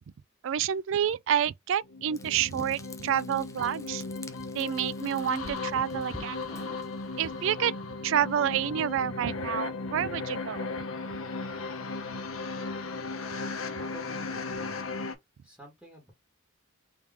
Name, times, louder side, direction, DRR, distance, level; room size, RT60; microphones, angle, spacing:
voice 1, 0.4-4.0 4.5-6.5 7.2-7.7 8.0-10.7, right 9 dB, 60° right, 0.3 m, -29 dB
sound 1, 1.8-15.2, left 3 dB, 75° left, 0.8 m, -36 dB
Frying (food), 2.1-7.5, left 2 dB, 15° left, 0.4 m, -49 dB
voice 2, 13.8-15.0 15.4-16.1, right 1 dB, 5° right, 1.3 m, -50 dB
3.5 x 3.0 x 3.4 m
head